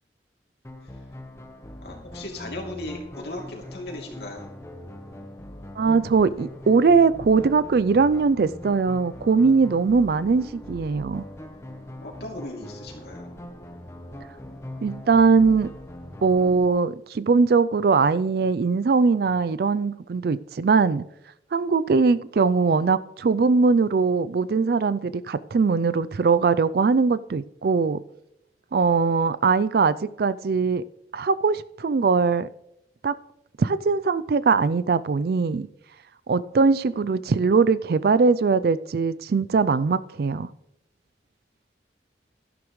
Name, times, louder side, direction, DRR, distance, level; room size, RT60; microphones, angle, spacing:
sound 1, 0.6-16.7, left 1 dB, 15° left, 0.9 m, -41 dB
voice 1, 1.8-4.5 12.0-13.4, left 1 dB, 65° left, 0 dB, 2.8 m, -37 dB
voice 2, 5.8-11.2 14.8-15.7 16.2-21.0 21.5-28.0 28.7-30.8 31.1-32.5 33.0-33.1 33.6-35.7 36.3-40.5, right 4 dB, 55° right, 16 dB, 0.4 m, -21 dB
13.0 x 11.0 x 3.1 m, 0.82 s
head